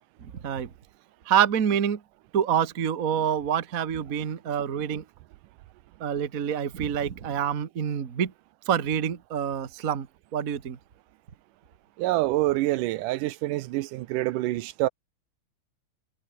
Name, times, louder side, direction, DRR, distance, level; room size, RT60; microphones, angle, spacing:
voice 1, 1.3-2.0 2.3-5.0 6.0-8.3 8.7-10.1 10.3-10.8, right 8 dB, 45° right, 1.2 m, -26 dB
voice 2, 12.0-14.9, right 17 dB, 90° right, 2.4 m, -26 dB
omnidirectional pair, 3.6 m